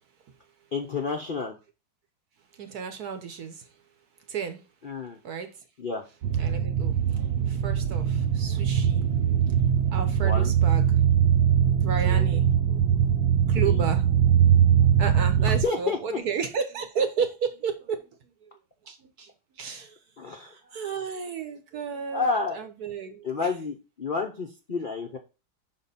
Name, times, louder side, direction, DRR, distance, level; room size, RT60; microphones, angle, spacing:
voice 1, 0.7-1.5 4.8-5.2 5.8-6.0 10.2-10.5 12.0-12.3 13.6-13.8 15.4-16.2 20.2-20.5 22.1-22.6 23.2-25.2, left 4 dB, 70° left, 0.4 m, -30 dB
voice 2, 2.6-3.6 4.3-4.6 5.2-5.5 6.4-11.0 11.7-12.9 13.5-14.1 15.0-18.0 18.9-19.3 19.6-20.0 20.4-23.2, right 6 dB, 60° right, 1.2 m, -33 dB
sound 1, 6.2-15.7, right 8 dB, 75° right, 1.4 m, -22 dB
5.8 x 4.3 x 4.0 m
omnidirectional pair, 2.2 m